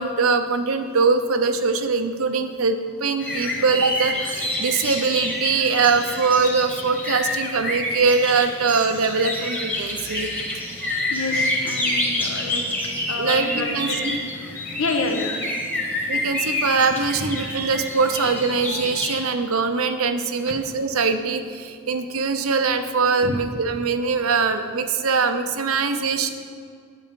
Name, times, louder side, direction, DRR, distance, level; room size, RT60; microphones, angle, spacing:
voice 1, 0.0-10.3 13.2-14.2 14.4-14.7 16.1-26.3, right 4 dB, 90° right, 8 dB, 0.7 m, -22 dB
sound 1, 3.2-19.2, left 1 dB, 10° left, 1.3 m, -28 dB
voice 2, 11.0-12.6 13.1-14.1 14.8-15.3 17.1-17.3 20.5-20.6 23.2-23.4, left 3 dB, 75° left, 3 dB, 1.2 m, -28 dB
9.0 x 8.0 x 5.3 m, 2.1 s
head